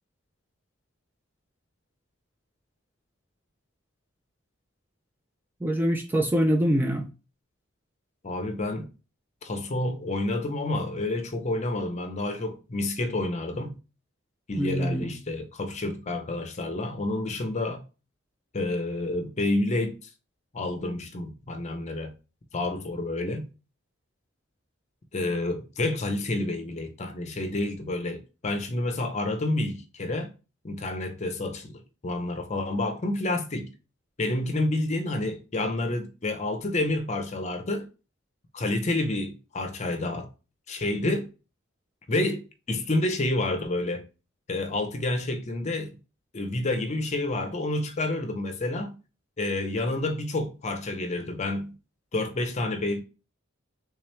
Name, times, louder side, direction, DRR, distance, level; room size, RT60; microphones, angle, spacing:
voice 1, 5.6-7.1 14.6-15.2, equal, 10° right, 0.3 m, -24 dB
voice 2, 8.2-8.9 9.4-13.8 14.5-17.8 18.5-20.0 20.5-22.1 22.5-23.5 25.1-30.3 30.6-33.7 34.2-37.9 38.5-40.3 40.7-41.3 42.1-44.0 44.5-45.9 46.3-48.9 49.4-51.7 52.1-53.0, left 2 dB, 35° left, 0.6 m, -29 dB
3.4 x 3.0 x 3.2 m
head